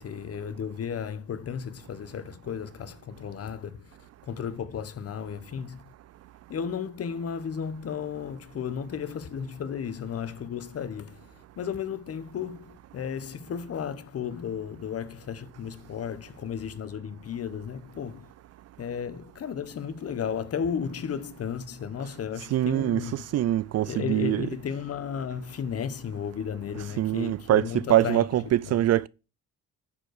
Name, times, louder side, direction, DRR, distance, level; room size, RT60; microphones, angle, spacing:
voice 1, 0.0-3.9 4.3-5.8 6.5-11.2 11.6-18.3 18.8-23.2 23.8-28.2 28.7-28.8, left 7 dB, 50° left, 1.0 m, -34 dB
voice 2, 22.5-24.5 27.0-29.1, right 13 dB, 55° right, 0.4 m, -24 dB
9.8 x 4.5 x 6.4 m
cardioid pair, 90°, 30 cm